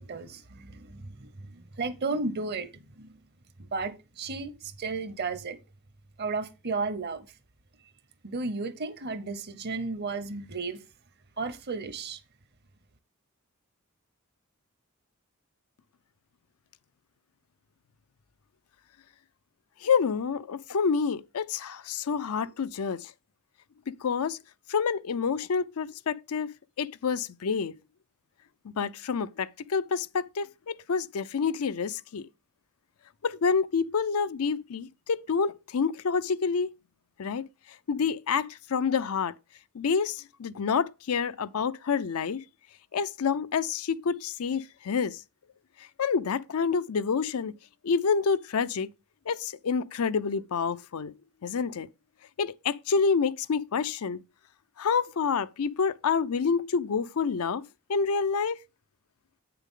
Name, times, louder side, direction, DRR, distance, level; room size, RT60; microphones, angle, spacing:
voice 1, 0.0-3.2 3.6-5.6 6.2-7.3 8.2-10.8 11.4-12.2, right 3 dB, 50° right, 0.9 m, -34 dB
voice 2, 19.8-23.1 24.0-24.4 24.7-26.5 26.8-27.8 28.6-32.3 33.2-36.7 37.2-37.5 37.9-39.3 39.7-42.4 42.9-45.2 46.0-47.5 47.8-48.9 49.3-51.1 51.4-51.9 52.4-54.2 54.8-57.6 57.9-58.6, left 5 dB, 80° left, 0.5 m, -28 dB
8.3 x 6.8 x 3.7 m
head